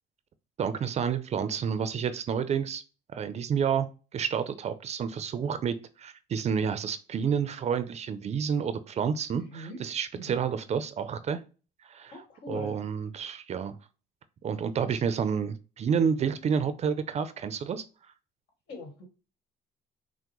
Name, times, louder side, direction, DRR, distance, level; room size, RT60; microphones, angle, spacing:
voice 1, 0.6-2.8 3.1-11.4 11.9-12.2 12.5-13.8 14.4-17.8, right 7 dB, 40° right, 12 dB, 0.5 m, -29 dB
voice 2, 9.4-9.8 10.1-10.4 12.1-12.8 14.8-15.0 18.7-19.1, left 2 dB, 80° left, 2 dB, 1.6 m, -42 dB
5.9 x 2.1 x 3.0 m, 0.34 s
cardioid pair, 110°, 17 cm